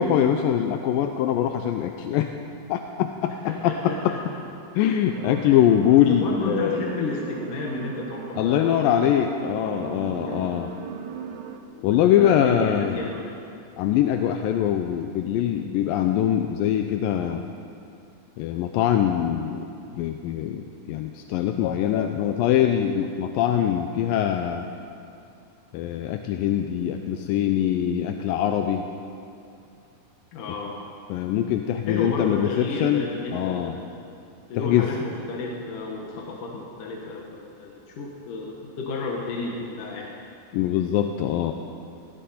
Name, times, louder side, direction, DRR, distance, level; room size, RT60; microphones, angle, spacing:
voice 1, 0.0-2.3 2.7-3.3 3.6-4.1 4.8-6.8 8.4-10.7 11.8-13.1 13.8-17.4 18.4-19.6 19.9-24.6 25.7-28.9 31.1-33.8 34.5-34.9 40.5-41.5, left 10 dB, 80° left, 5 dB, 2.2 m, -23 dB
voice 2, 3.5-4.2 5.4-5.6 6.1-9.3 9.6-10.5 11.7-13.4 30.3-30.8 31.8-33.8 34.5-40.1, left 3 dB, 65° left, -2 dB, 2.8 m, -32 dB
sound 1, 5.1-11.6, right 7 dB, 80° right, 1.5 m, -37 dB
21.0 x 16.0 x 4.3 m, 2.5 s
omnidirectional pair, 4.3 m